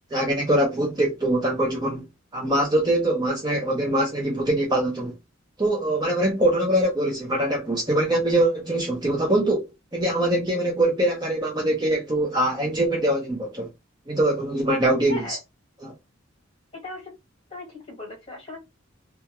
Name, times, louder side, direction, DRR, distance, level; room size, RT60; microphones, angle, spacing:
voice 1, 0.1-2.0 2.3-5.1 5.6-13.7 14.1-15.4 15.8-15.9, right 1 dB, 20° right, 0.5 m, -23 dB
voice 2, 17.5-18.6, left 2 dB, 25° left, 1.2 m, -38 dB
2.3 x 2.2 x 2.8 m
head